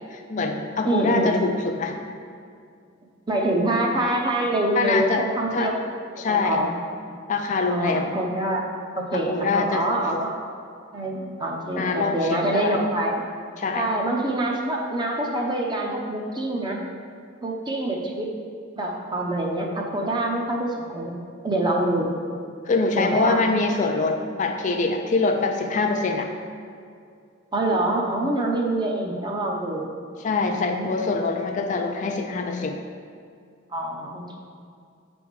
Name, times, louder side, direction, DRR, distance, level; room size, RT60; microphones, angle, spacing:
voice 1, 0.1-2.0 4.7-5.2 5.5-5.7 6.2-6.6 7.3-8.1 9.1-9.9 10.1-10.2 11.8-12.8 13.6-13.9 22.7-26.3 30.2-32.8, left 3 dB, 40° left, 4 dB, 0.4 m, -24 dB
voice 2, 0.8-1.4 3.3-5.8 6.3-6.8 7.7-8.6 9.0-10.4 10.9-13.2 13.7-16.8 17.4-18.3 18.8-21.2 21.4-22.1 23.0-23.4 27.5-29.9 30.5-31.2 33.7-34.4, right 1 dB, 25° right, 0 dB, 0.7 m, -25 dB
8.1 x 3.5 x 5.1 m, 2.3 s
head